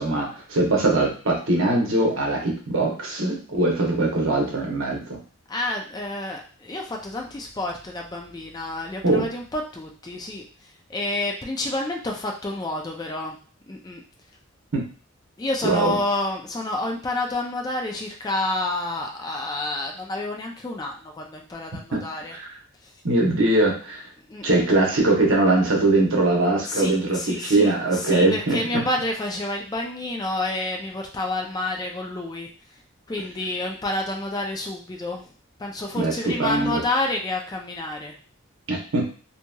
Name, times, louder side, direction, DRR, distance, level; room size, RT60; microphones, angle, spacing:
voice 1, 0.0-5.2 9.0-9.2 14.7-14.8 15.6-16.0 21.9-22.0 22.3-22.5 23.0-24.1 24.4-28.6 35.9-36.8 38.7-39.1, right 2 dB, 65° right, -1 dB, 0.8 m, -21 dB
voice 2, 5.5-13.4 13.7-14.0 15.4-22.4 22.8-22.9 24.3-24.7 26.7-32.5 33.1-35.3 35.6-38.2, left 2 dB, 20° left, 1 dB, 0.3 m, -29 dB
2.8 x 2.7 x 2.2 m, 0.38 s
head